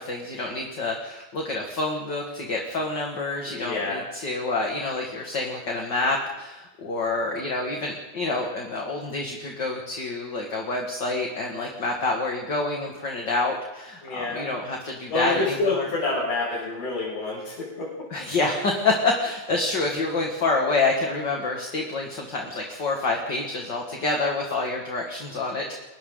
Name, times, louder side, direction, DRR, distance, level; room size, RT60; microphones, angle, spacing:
voice 1, 0.0-15.9 18.1-25.6, left 3 dB, 35° left, 0 dB, 2.1 m, -27 dB
voice 2, 3.4-4.0 14.0-14.4 15.1-17.9, left 3 dB, 90° left, -8 dB, 9.5 m, -27 dB
29.5 x 23.0 x 4.0 m, 1.0 s
omnidirectional pair, 4.3 m